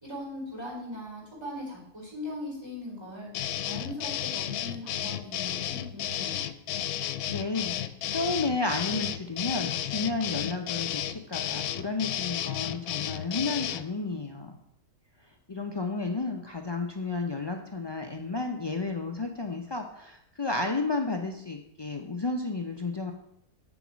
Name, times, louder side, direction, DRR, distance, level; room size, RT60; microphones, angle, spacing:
voice 1, 0.0-3.3 3.6-6.4, left 1 dB, 15° right, -4 dB, 4.5 m, -39 dB
sound 1, 3.3-13.9, left 11 dB, 85° left, 1.1 m, -33 dB
voice 2, 7.3-7.8 8.1-14.6 15.5-23.1, left 3 dB, 40° left, 3 dB, 0.3 m, -32 dB
8.9 x 7.1 x 6.2 m, 0.76 s
omnidirectional pair, 1.5 m